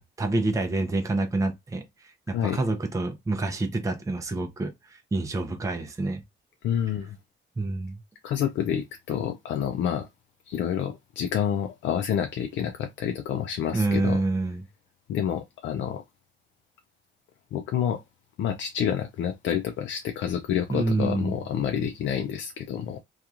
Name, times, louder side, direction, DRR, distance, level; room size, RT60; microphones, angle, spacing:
voice 1, 0.0-6.2 7.6-8.0 13.7-14.6 20.7-21.4, right 2 dB, 15° right, 0.5 m, -27 dB
voice 2, 6.6-7.2 8.2-10.1 10.5-14.2 15.1-16.0 17.5-18.0 18.4-23.0, left 9 dB, 70° left, 0.5 m, -28 dB
2.8 x 2.4 x 2.4 m
cardioid pair, 90°, 20 cm